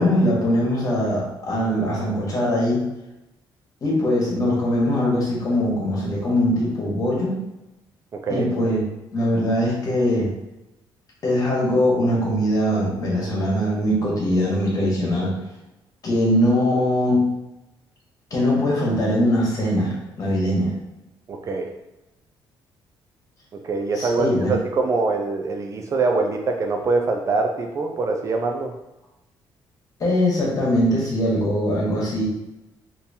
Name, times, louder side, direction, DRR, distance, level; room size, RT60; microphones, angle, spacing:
voice 1, 0.0-2.9 3.8-7.4 8.3-8.8 9.1-10.3 11.2-15.4 16.0-17.4 18.3-20.7 23.9-24.5 30.0-32.2, left 1 dB, 40° left, -4 dB, 1.2 m, -21 dB
voice 2, 8.1-8.5 21.3-21.7 23.6-28.7, right 3 dB, 35° right, 2 dB, 0.3 m, -24 dB
3.7 x 2.8 x 2.7 m, 0.95 s
cardioid pair, 150°, 9 cm